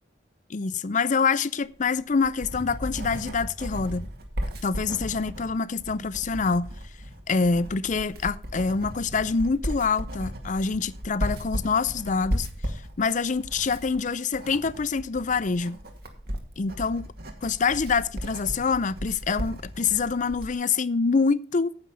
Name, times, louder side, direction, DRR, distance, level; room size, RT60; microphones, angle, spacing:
voice 1, 0.5-4.1 4.6-6.7 7.3-12.5 13.0-15.8 16.6-17.0 17.4-21.7, left 5 dB, 45° left, 0.5 m, -26 dB
Writing, 1.8-20.6, equal, 60° right, 2.0 m, -35 dB
9.6 x 8.4 x 5.6 m
head